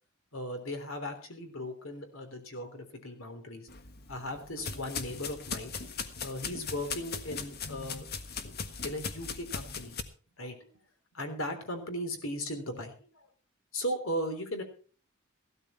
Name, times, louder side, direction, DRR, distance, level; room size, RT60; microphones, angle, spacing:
voice 1, 0.3-3.7 4.1-5.7 6.2-8.0 8.8-10.0 10.4-10.7 11.1-13.3 13.7-14.6, equal, 70° left, 7 dB, 3.5 m, -37 dB
sound 1, 3.7-10.0, left 5 dB, 50° left, 1.5 m, -39 dB
15.5 x 13.0 x 4.3 m, 0.39 s
head